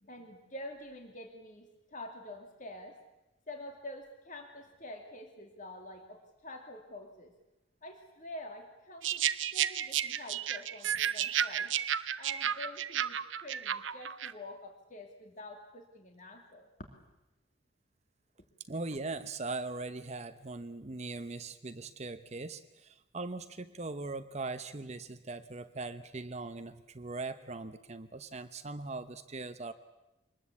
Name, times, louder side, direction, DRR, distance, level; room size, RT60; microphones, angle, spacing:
voice 1, 0.0-3.0 3.5-7.3 7.8-9.3 9.5-11.7 12.2-16.9, left 1 dB, 40° left, 3 dB, 2.5 m, -47 dB
sound 1, 9.0-14.3, right 9 dB, 85° right, 0.9 m, -32 dB
voice 2, 18.7-29.7, right 3 dB, 35° right, 10 dB, 0.9 m, -40 dB
25.0 x 20.5 x 8.4 m, 0.98 s
head